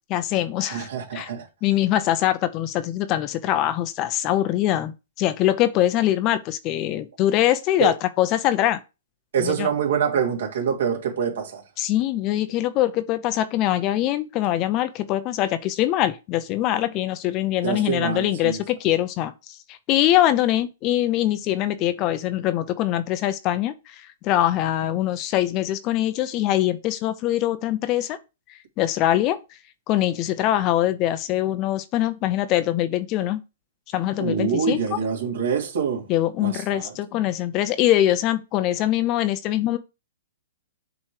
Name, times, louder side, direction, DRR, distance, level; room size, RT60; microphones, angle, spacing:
voice 1, 0.1-1.3 1.6-8.8 9.4-9.7 11.8-28.2 28.8-29.4 29.9-33.4 33.9-34.8 36.1-39.8, left 13 dB, 30° left, 0.5 m, -23 dB
voice 2, 0.7-1.5 7.8-7.9 9.3-11.6 17.6-18.6 34.2-36.1 36.4-36.9, right 7 dB, 70° right, 2.6 m, -25 dB
7.4 x 3.1 x 4.7 m
hypercardioid pair, 155°, 0 cm